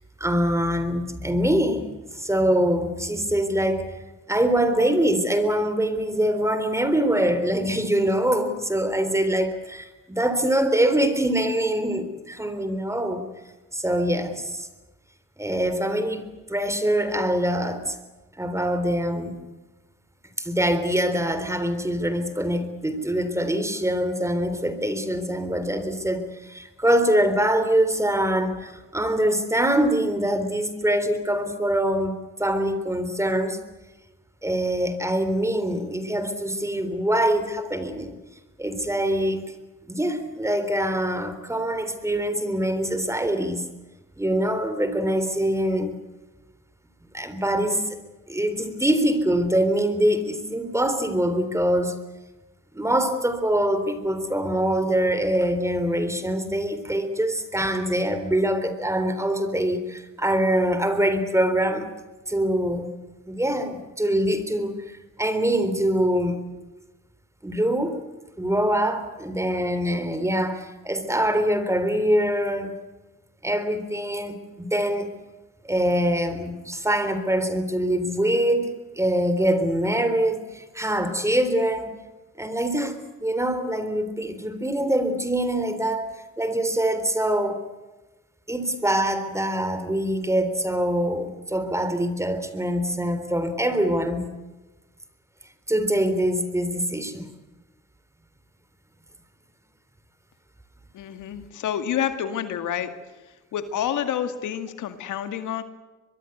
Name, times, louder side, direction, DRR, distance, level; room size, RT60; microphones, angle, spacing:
voice 1, 0.2-1.9 2.1-3.8 4.3-13.3 13.7-14.7 15.4-18.0 18.4-19.4 20.4-33.6 34.4-38.2 38.6-39.5 39.9-43.7 44.2-46.0 47.1-48.0 48.3-52.0 52.7-61.9 62.3-62.9 63.3-66.5 67.4-68.0 68.4-72.8 73.4-75.1 75.6-81.9 82.4-87.6 88.5-94.3 95.7-97.3, right 1 dB, 10° right, 10 dB, 3.7 m, -24 dB
voice 2, 100.9-102.9 103.5-105.6, left 9 dB, 80° left, 9 dB, 2.2 m, -28 dB
23.5 x 23.0 x 8.1 m, 1.2 s
cardioid pair, 90°, 30 cm